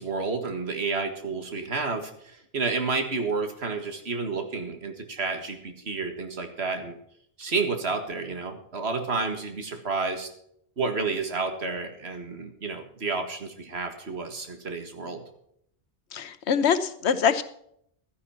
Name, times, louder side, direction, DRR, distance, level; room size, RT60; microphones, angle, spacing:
voice 1, 0.0-6.9 7.4-10.3 10.8-15.2, right 4 dB, 75° right, 6 dB, 2.0 m, -30 dB
voice 2, 16.1-17.4, left 7 dB, 90° left, 13 dB, 1.2 m, -24 dB
12.5 x 10.5 x 5.8 m, 0.70 s
omnidirectional pair, 1.1 m